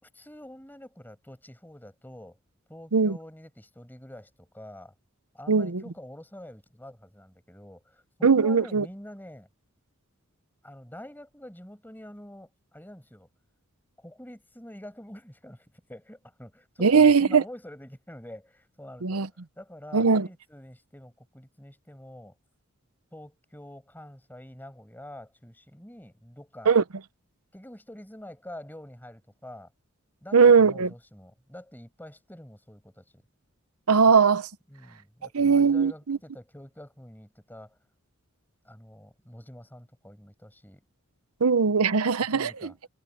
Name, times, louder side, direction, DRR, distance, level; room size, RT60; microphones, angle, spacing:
voice 1, 0.0-2.4 2.7-4.9 5.3-9.5 10.6-13.3 14.0-22.4 23.1-26.8 27.5-29.7 30.2-33.2 34.7-37.8 38.6-40.8 42.1-42.7, left 1 dB, 10° left, 5.6 m, -46 dB
voice 2, 5.5-5.8 8.2-8.9 16.8-17.4 19.0-19.3 19.9-20.3 26.7-26.8 30.3-30.9 33.9-34.5 35.3-36.2 41.4-42.5, right 5 dB, 85° right, 0.8 m, -19 dB
head